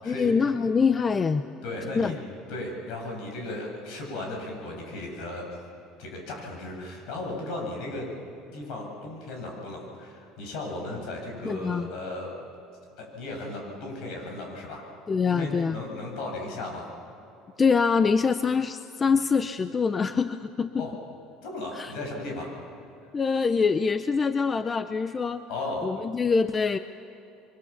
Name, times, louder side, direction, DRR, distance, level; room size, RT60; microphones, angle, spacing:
voice 1, 0.1-1.4 2.0-2.1 11.4-11.9 15.1-15.8 17.6-20.9 21.7-21.9 23.1-25.4 25.8-26.8, left 5 dB, 20° left, 11 dB, 0.5 m, -24 dB
voice 2, 1.6-2.1 2.5-5.4 6.0-8.1 8.5-12.3 13.0-14.8 15.2-16.9 20.8-20.9 21.4-22.5 25.5-25.9, left 2 dB, 60° left, 0 dB, 7.5 m, -35 dB
27.5 x 24.0 x 7.1 m, 2.9 s
cardioid pair, 160°, 0 cm